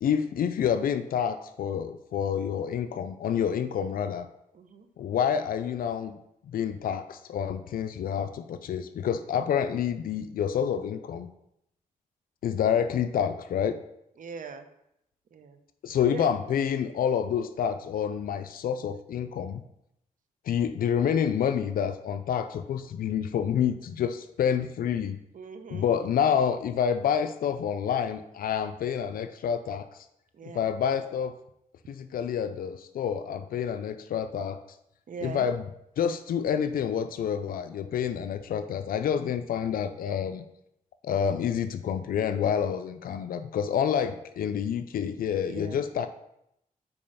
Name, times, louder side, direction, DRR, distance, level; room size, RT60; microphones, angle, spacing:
voice 1, 0.0-4.3 5.0-6.2 6.5-11.3 12.4-13.8 15.8-19.6 20.5-25.2 25.7-29.9 30.5-31.3 31.9-34.6 35.2-35.6 36.0-40.4 41.0-46.1, left 8 dB, 85° left, 9 dB, 0.4 m, -28 dB
voice 2, 4.5-4.9 14.2-14.7 15.3-15.6 16.1-16.3 25.3-25.9 26.3-26.4 30.3-30.7 35.1-35.5 45.5-45.8, right 5 dB, 65° right, 8 dB, 0.8 m, -40 dB
5.4 x 4.8 x 5.5 m, 0.81 s
cardioid pair, 75°, 15 cm